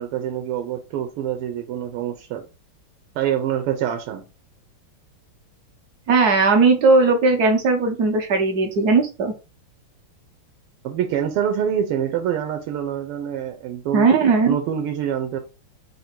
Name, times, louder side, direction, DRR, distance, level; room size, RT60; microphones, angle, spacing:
voice 1, 0.0-2.5 3.2-4.3 10.8-14.1 14.5-15.4, right 9 dB, 90° right, 1.6 m, -25 dB
voice 2, 6.1-9.3 13.9-14.5, right 4 dB, 65° right, 1.0 m, -17 dB
3.9 x 2.6 x 4.3 m
omnidirectional pair, 2.4 m